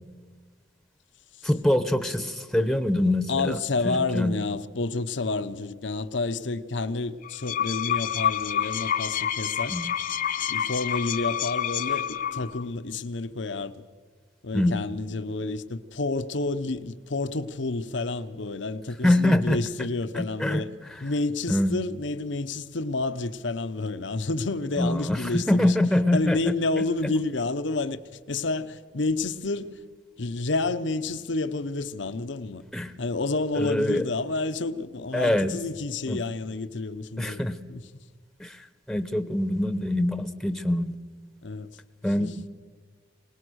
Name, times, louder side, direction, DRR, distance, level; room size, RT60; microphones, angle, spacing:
voice 1, 1.4-3.6 3.8-4.3 9.7-9.9 14.5-14.8 19.0-19.6 20.1-20.6 20.9-21.0 21.5-21.8 24.8-26.4 32.7-32.9 33.5-34.0 35.1-35.6 36.1-36.2 37.2-37.5 38.4-40.9 42.0-42.3, left 1 dB, ahead, 0.9 m, -24 dB
voice 2, 3.3-9.8 10.5-13.7 14.4-20.7 21.0-25.8 26.1-28.0 28.3-29.8 30.2-32.6 33.0-37.4 37.7-37.9 41.4-41.7 42.2-42.3, left 3 dB, 70° left, 0.9 m, -29 dB
sound 1, 7.2-12.6, left 9 dB, 45° left, 0.7 m, -28 dB
25.0 x 19.5 x 6.4 m
head